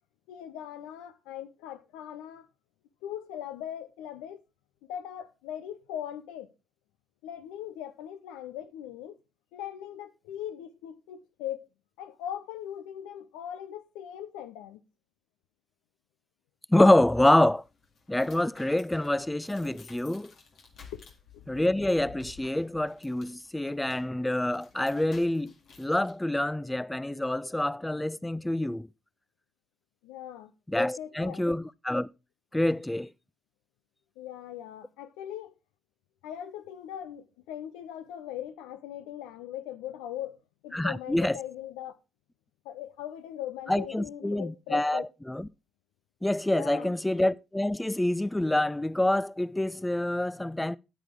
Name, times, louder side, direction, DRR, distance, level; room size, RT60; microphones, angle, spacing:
voice 1, 0.3-2.5 3.0-4.4 4.9-6.5 7.2-9.2 9.5-11.7 12.0-14.8 20.9-21.0 21.3-21.5 30.0-30.5 30.8-31.4 34.2-35.6 36.2-40.4 40.6-42.0 42.6-45.0 46.5-46.9, left 11 dB, 75° left, 0.6 m, -40 dB
voice 2, 16.7-17.6 18.1-20.3 21.5-25.5 25.8-28.9 30.7-32.1 32.5-33.1 40.7-41.4 43.7-45.4 46.2-50.8, left 1 dB, 10° left, 0.4 m, -26 dB
sound 1, 17.5-26.1, left 5 dB, 60° left, 2.0 m, -54 dB
9.3 x 9.2 x 3.6 m
hypercardioid pair, 40°, 0 cm